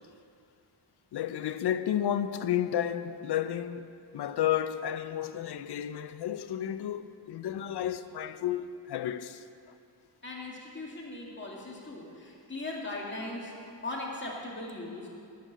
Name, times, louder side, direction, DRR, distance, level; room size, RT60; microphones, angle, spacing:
voice 1, 1.1-9.4, left 10 dB, 65° left, 0.6 m, -32 dB
voice 2, 10.2-13.5 13.8-15.1, left 2 dB, 25° left, 2.2 m, -39 dB
9.4 x 6.6 x 8.0 m
wide cardioid pair, 105°, 44 cm